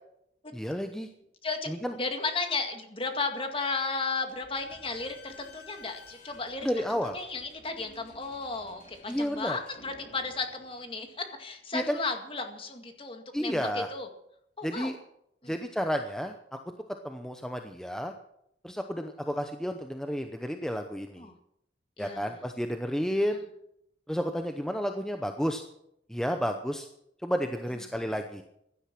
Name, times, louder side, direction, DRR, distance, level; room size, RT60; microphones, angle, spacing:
voice 1, 0.5-1.1 1.7-1.9 6.6-7.2 9.1-9.6 11.7-12.0 13.3-13.9 14.6-15.0 15.5-16.6 17.0-18.1 18.6-21.2 22.0-23.4 24.1-25.6 26.1-26.9 27.2-28.4, equal, 5° left, 5 dB, 0.8 m, -31 dB
voice 2, 2.0-6.7 7.1-14.1 14.6-14.9 15.4-15.6 21.2-21.3 22.0-22.4, left 3 dB, 30° left, 5 dB, 2.0 m, -34 dB
Slam / Squeak, 4.3-11.6, left 3 dB, 45° left, 5.3 m, -54 dB
16.0 x 11.5 x 6.1 m, 0.76 s
head